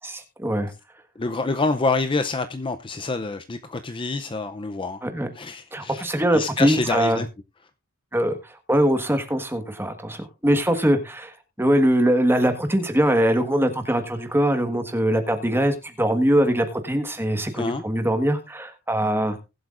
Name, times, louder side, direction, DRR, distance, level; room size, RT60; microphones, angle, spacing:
voice 1, 0.0-0.7 5.0-5.3 5.7-7.2 8.1-19.4, equal, 10° right, 1.4 m, -22 dB
voice 2, 1.2-5.0 5.3-7.3 17.5-17.8, left 3 dB, 25° left, 0.5 m, -27 dB
20.0 x 7.8 x 2.5 m
head